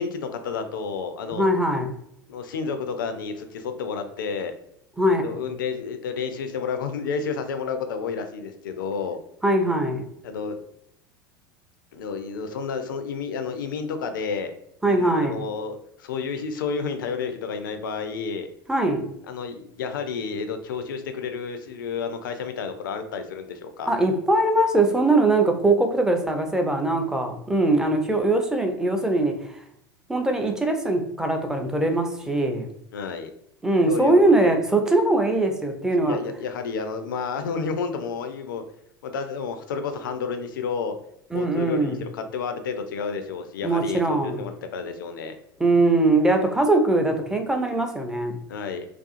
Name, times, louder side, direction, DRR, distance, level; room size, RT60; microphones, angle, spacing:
voice 1, 0.0-1.5 2.3-4.5 5.2-9.2 10.2-10.6 11.9-14.5 14.8-18.5 19.3-23.9 32.9-33.3 33.9-34.6 36.0-38.6 39.0-41.0 41.3-45.4 48.5-48.9, left 5 dB, 65° left, 7 dB, 0.4 m, -30 dB
voice 2, 1.3-1.9 5.0-5.3 9.4-10.0 14.8-15.4 18.7-19.0 23.9-29.3 30.1-32.7 33.6-36.2 41.3-42.0 43.6-44.4 45.6-48.4, right 2 dB, 5° right, 4 dB, 0.4 m, -21 dB
2.5 x 2.4 x 2.4 m, 0.75 s
figure-of-eight pair, 75°, 12 cm